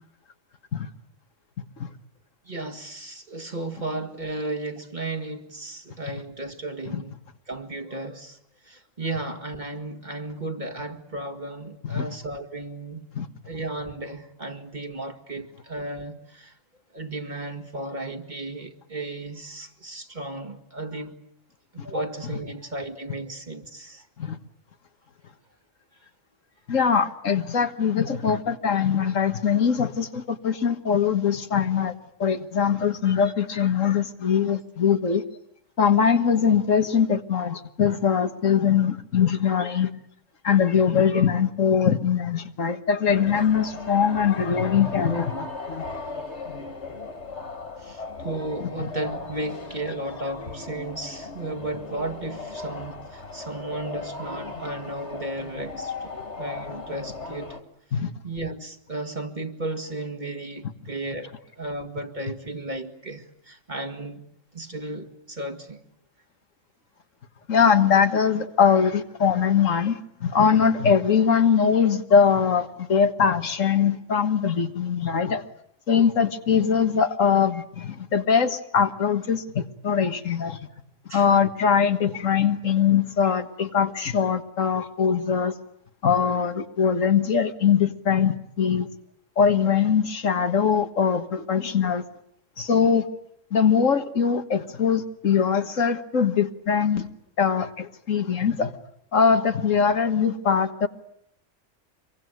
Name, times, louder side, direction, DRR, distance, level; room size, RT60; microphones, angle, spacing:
voice 1, 2.5-7.2 7.5-8.4 8.6-13.1 13.4-16.6 16.9-21.2 21.7-24.1 47.8-56.1 56.4-57.6 58.2-64.2 64.5-65.8 81.1-81.3, right 2 dB, 35° right, 2.2 m, -34 dB
voice 2, 26.7-31.9 32.2-35.2 35.8-39.9 40.4-45.8 57.9-58.1 67.5-75.4 75.9-80.6 81.1-85.5 86.0-88.9 89.4-92.0 92.6-93.1 93.5-97.1 97.4-98.7 99.1-100.9, left 7 dB, 85° left, 1.8 m, -22 dB
sound 1, 43.1-57.6, left 4 dB, 60° left, 2.7 m, -37 dB
26.5 x 23.0 x 9.4 m
omnidirectional pair, 1.3 m